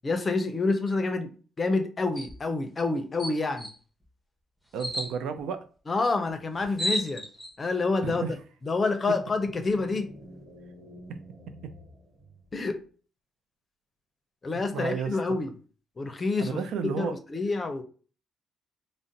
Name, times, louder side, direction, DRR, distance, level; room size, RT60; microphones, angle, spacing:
voice 1, 0.0-1.3 1.6-3.7 5.9-7.2 7.6-8.3 8.7-10.1 12.5-12.8 14.4-15.5 16.0-16.6 17.0-17.8, left 3 dB, 35° left, 0.5 m, -28 dB
sound 1, 2.2-2.4 2.8-2.9 3.2-3.7 4.8-5.1 6.3-6.4 6.6-7.5, equal, 5° right, 0.8 m, -32 dB
voice 2, 4.7-5.7 8.0-8.4 14.7-15.4 16.4-17.2, right 6 dB, 85° right, 0.4 m, -32 dB
sound 2, 9.1-12.8, equal, 65° right, 0.9 m, -48 dB
2.5 x 2.0 x 3.8 m
cardioid pair, 90°, 0 cm